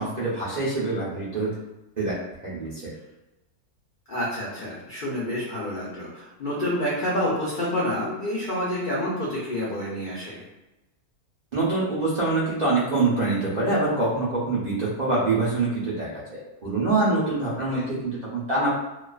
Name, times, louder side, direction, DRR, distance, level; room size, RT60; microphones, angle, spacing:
voice 1, 0.0-1.5 2.0-2.2 2.4-2.7 11.5-18.7, right 3 dB, 75° right, -8 dB, 0.4 m, -25 dB
voice 2, 4.1-10.4 17.6-17.8, left 1 dB, 75° left, -7 dB, 0.4 m, -28 dB
2.3 x 2.3 x 2.3 m, 1.0 s
omnidirectional pair, 1.6 m